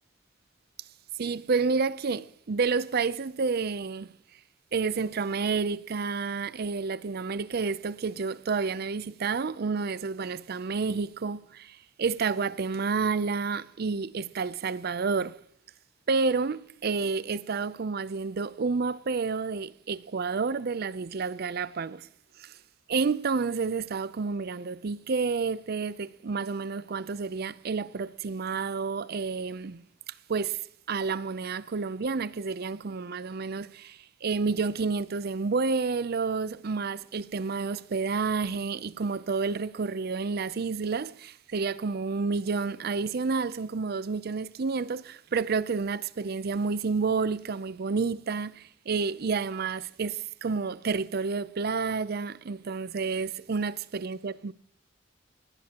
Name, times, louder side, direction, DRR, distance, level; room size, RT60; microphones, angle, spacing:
voice 1, 1.2-4.1 4.7-15.4 16.1-22.1 22.4-22.5 22.9-30.6 30.9-54.5, right 4 dB, 55° right, 0.5 m, -30 dB
19.5 x 18.0 x 2.9 m
head